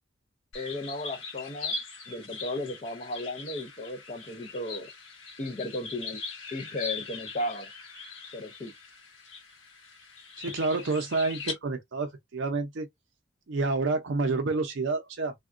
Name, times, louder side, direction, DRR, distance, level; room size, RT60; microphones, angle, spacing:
sound 1, 0.5-11.5, left 4 dB, 80° left, 1.1 m, -41 dB
voice 1, 0.5-1.7 2.1-4.9 5.4-6.2 6.5-7.7 8.3-8.7, left 1 dB, 35° left, 0.5 m, -35 dB
voice 2, 10.4-12.9 13.5-15.3, right 3 dB, 65° right, 0.5 m, -29 dB
3.5 x 2.2 x 2.5 m
head